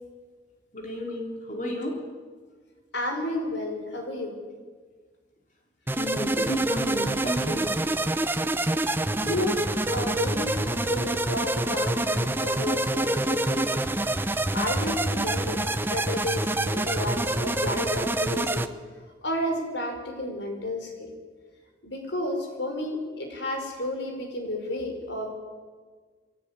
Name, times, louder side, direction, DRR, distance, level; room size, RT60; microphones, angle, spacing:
voice 1, 0.7-2.0 5.9-7.7, equal, 45° left, 1 dB, 3.6 m, -31 dB
voice 2, 2.9-4.3 9.2-9.6 9.9-13.8 14.5-18.7 19.2-21.1 21.8-25.3, left 1 dB, 80° left, 3 dB, 5.8 m, -31 dB
sound 1, 5.9-18.7, right 1 dB, 10° right, 0.8 m, -26 dB
23.0 x 17.0 x 9.9 m, 1.5 s
head